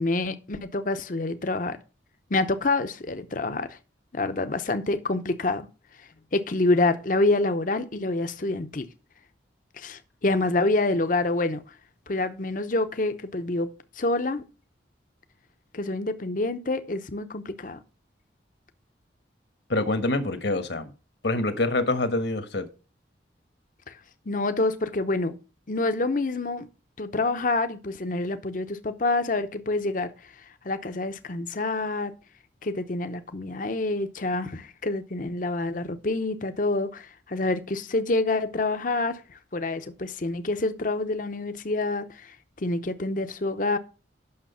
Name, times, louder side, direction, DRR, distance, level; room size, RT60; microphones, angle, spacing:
voice 1, 0.0-1.8 2.3-3.8 4.1-5.7 6.3-8.9 9.8-11.6 12.1-14.4 15.7-17.8 23.9-24.0 24.3-25.3 25.7-26.7 27.0-30.3 30.6-32.1 32.6-43.8, left 2 dB, 45° left, 0.8 m, -27 dB
voice 2, 19.7-20.9 21.2-22.6, left 2 dB, 70° left, 1.4 m, -25 dB
8.8 x 6.2 x 5.6 m
head